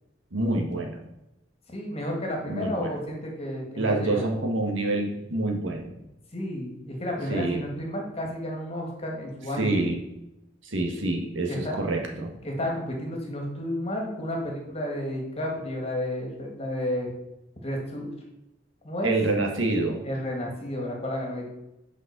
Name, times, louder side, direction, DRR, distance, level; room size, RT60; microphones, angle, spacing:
voice 1, 0.3-1.0 2.4-2.9 3.8-5.9 7.3-7.7 9.6-10.0 10.6-12.3 19.0-20.0, right 2 dB, 75° right, 1 dB, 1.6 m, -27 dB
voice 2, 1.7-4.2 6.3-9.8 11.5-11.9 12.4-17.1 17.6-18.1 18.8-19.1 20.0-21.5, left 1 dB, 30° left, 0 dB, 2.1 m, -31 dB
6.4 x 5.4 x 6.7 m, 0.91 s
head